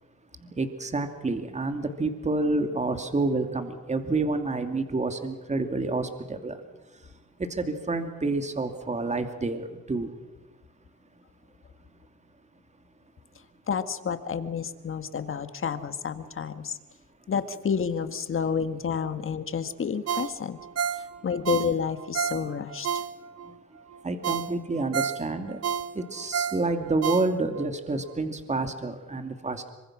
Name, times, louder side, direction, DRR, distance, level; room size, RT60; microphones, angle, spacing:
voice 1, 0.4-6.6 7.4-10.1 23.4-23.6 24.0-25.6 25.9-29.7, right 3 dB, 25° right, 7 dB, 2.7 m, -29 dB
voice 2, 13.7-16.8 17.3-20.6 21.0-22.9, left 6 dB, 45° left, 10 dB, 1.9 m, -30 dB
Ringtone, 20.1-23.5 23.9-24.0 24.2-27.7 28.1-28.2, right 7 dB, 55° right, 1.1 m, -31 dB
26.5 x 24.5 x 6.2 m, 1.2 s
cardioid pair, 90°, 30 cm